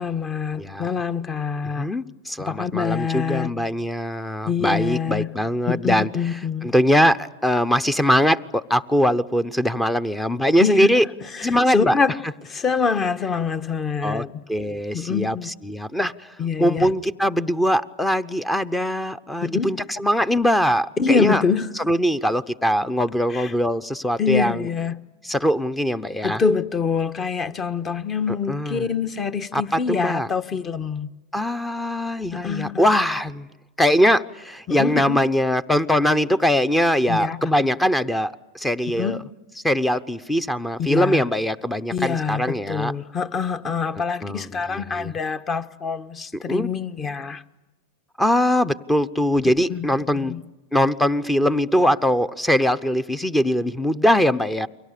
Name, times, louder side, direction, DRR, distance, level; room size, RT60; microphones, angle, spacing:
voice 1, 0.0-1.9 2.4-3.5 4.5-5.3 5.7-6.7 10.6-10.9 11.2-12.1 12.4-14.4 14.9-15.5 16.4-16.9 19.4-19.8 21.0-21.8 23.3-23.5 24.2-25.0 26.2-31.1 32.3-32.9 34.7-35.2 37.1-37.4 38.9-39.2 40.8-41.2 41.9-47.4 49.7-49.9 50.1-50.4, left 5 dB, 25° left, 1.3 m, -25 dB
voice 2, 0.6-0.9 1.8-6.1 6.6-11.0 11.4-11.9 14.0-14.2 14.5-15.4 15.6-16.3 16.6-21.4 21.9-24.6 25.2-26.4 28.3-28.8 29.5-30.3 31.3-33.5 33.8-39.2 39.6-42.9 44.2-45.1 46.5-46.7 48.2-50.3 50.7-54.7, equal, 10° left, 0.8 m, -21 dB
29.5 x 23.5 x 6.8 m
hypercardioid pair, 110°, 0 cm